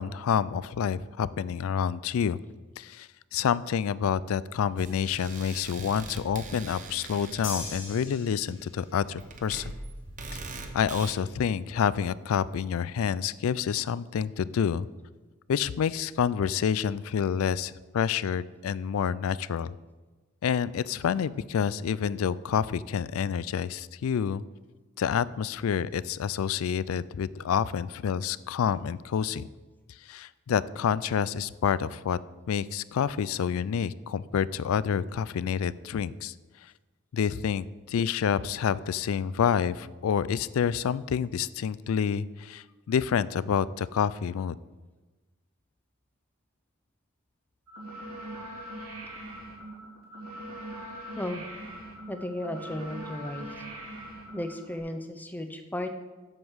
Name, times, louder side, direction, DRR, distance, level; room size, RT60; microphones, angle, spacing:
voice 1, 0.0-2.4 2.8-9.6 10.7-14.9 15.5-19.7 20.4-24.4 25.0-29.5 30.1-32.2 32.5-36.3 37.1-44.6, left 7 dB, 75° left, 19 dB, 0.3 m, -28 dB
sound 1, 4.8-11.1, right 3 dB, 35° right, 0.9 m, -42 dB
sound 2, 7.4-9.0, left 4 dB, 60° left, 2.1 m, -39 dB
sound 3, 47.7-54.8, right 1 dB, 85° right, 3.3 m, -41 dB
voice 2, 52.1-53.5 54.3-55.9, left 1 dB, 10° left, 6 dB, 0.6 m, -34 dB
7.8 x 7.3 x 6.3 m, 1.2 s
head